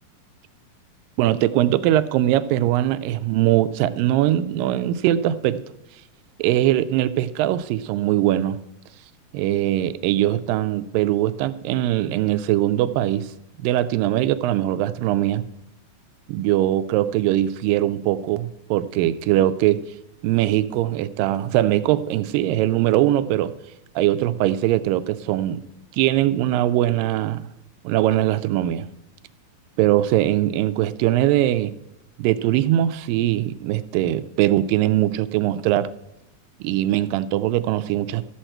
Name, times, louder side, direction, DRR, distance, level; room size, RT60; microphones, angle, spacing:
voice 1, 1.2-5.6 6.4-8.6 9.3-13.3 13.6-15.4 16.3-19.8 20.2-23.5 24.0-25.6 25.9-27.5 27.8-28.9 29.8-31.7 32.2-35.9 36.6-38.2, right 13 dB, 80° right, 13 dB, 2.1 m, -21 dB
13.5 x 7.8 x 4.4 m, 0.86 s
omnidirectional pair, 4.2 m